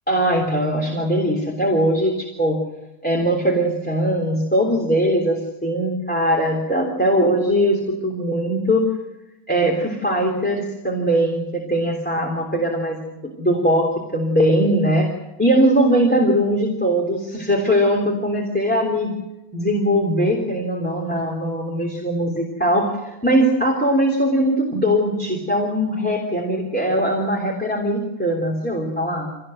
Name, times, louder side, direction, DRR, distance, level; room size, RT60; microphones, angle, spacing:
voice 1, 0.1-2.6 3.0-8.9 9.5-13.0 13.4-15.1 15.4-19.1 19.5-29.3, equal, 5° left, 0 dB, 3.3 m, -20 dB
26.0 x 18.5 x 7.9 m, 0.99 s
omnidirectional pair, 1.6 m